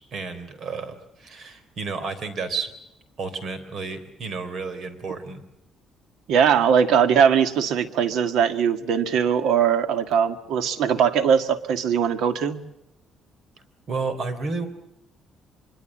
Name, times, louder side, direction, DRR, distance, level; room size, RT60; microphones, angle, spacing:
voice 1, 0.1-2.7 3.2-5.4 13.9-14.7, right 4 dB, 45° right, 11 dB, 3.5 m, -31 dB
voice 2, 6.3-12.6, right 7 dB, 80° right, 10 dB, 1.8 m, -20 dB
24.5 x 23.5 x 7.4 m, 0.87 s
cardioid pair, 155°, 0 cm